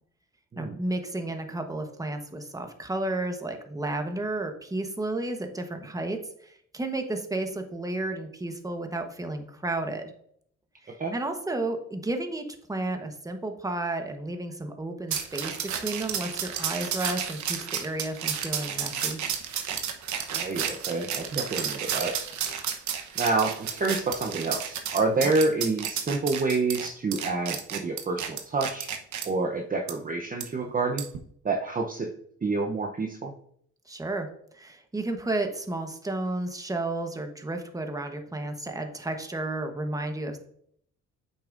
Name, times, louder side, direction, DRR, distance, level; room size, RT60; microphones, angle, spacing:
voice 1, 0.6-10.1 10.8-19.2 25.2-25.3 33.9-34.3 34.5-40.4, right 2 dB, 10° right, 5 dB, 1.2 m, -32 dB
sound 1, 15.1-29.3 29.9-30.0 30.4-30.5 31.0-31.2, right 8 dB, 70° right, 1.1 m, -32 dB
voice 2, 20.3-22.1 23.2-28.9 29.2-31.1 31.4-32.1 32.4-33.3, right 3 dB, 30° right, 2 dB, 0.8 m, -28 dB
8.3 x 6.2 x 2.6 m, 0.64 s
cardioid pair, 90°, 30 cm